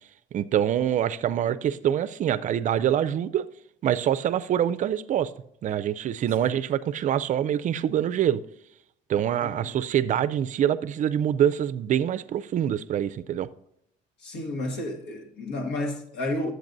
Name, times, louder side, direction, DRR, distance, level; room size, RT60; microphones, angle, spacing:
voice 1, 0.3-3.4 3.8-5.3 5.6-8.4 9.1-13.5, right 10 dB, 50° right, 0.4 m, -25 dB
voice 2, 9.4-9.7 14.2-16.5, left 1 dB, 80° left, 1.5 m, -31 dB
12.0 x 7.8 x 2.6 m
cardioid pair, 110°, 17 cm